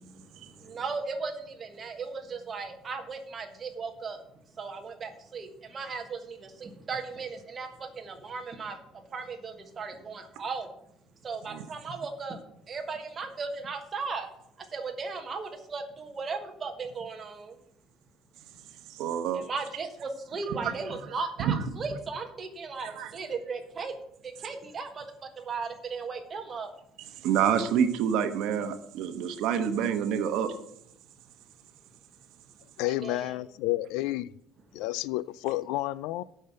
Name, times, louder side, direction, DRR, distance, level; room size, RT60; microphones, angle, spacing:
voice 1, 0.0-4.2 4.6-8.8 9.1-10.7 11.2-12.4 12.7-14.3 14.7-17.6 19.3-24.0 24.2-26.7 32.9-33.4, right 4 dB, 25° right, 1.3 m, -36 dB
voice 2, 18.9-19.4 20.6-20.7 21.4-21.6 22.8-23.1 27.2-30.5, right 8 dB, 60° right, 1.0 m, -27 dB
voice 3, 32.8-34.3 34.7-36.2, left 17 dB, 80° left, 0.3 m, -30 dB
8.6 x 5.7 x 7.8 m
cardioid pair, 165°, 0 cm